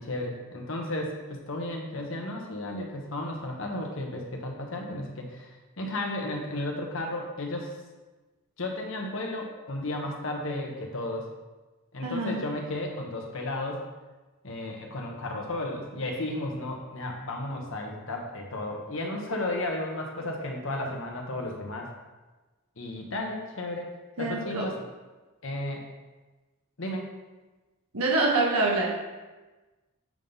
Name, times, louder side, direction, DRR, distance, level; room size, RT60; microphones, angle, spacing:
voice 1, 0.0-5.5 5.8-7.7 8.6-11.3 11.9-13.9 14.4-21.9 22.8-23.9 24.2-24.7 25.4-25.8 26.8-27.1, left 1 dB, 60° left, 1 dB, 1.1 m, -33 dB
voice 2, 12.0-12.4 24.2-24.6 27.9-28.9, right 2 dB, 85° right, -2 dB, 1.4 m, -25 dB
7.5 x 3.6 x 5.4 m, 1.2 s
head